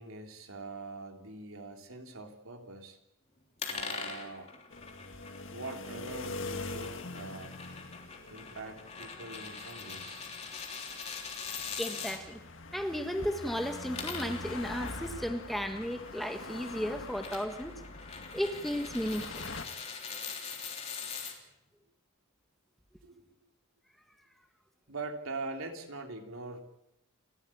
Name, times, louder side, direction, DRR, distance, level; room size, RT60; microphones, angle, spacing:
voice 1, 0.0-3.0 3.7-4.5 5.5-7.6 8.3-10.2 23.0-23.3 24.9-26.6, right 3 dB, 75° right, 3 dB, 3.4 m, -43 dB
sound 1, 3.6-12.2 13.7-21.3, left 5 dB, 30° left, 3.4 m, -43 dB
sound 2, 4.7-19.7, left 2 dB, 60° left, 1.9 m, -44 dB
voice 2, 11.8-12.4 12.7-17.8 18.3-19.5, equal, ahead, 5 dB, 1.5 m, -34 dB
30.0 x 13.5 x 8.8 m, 0.86 s
head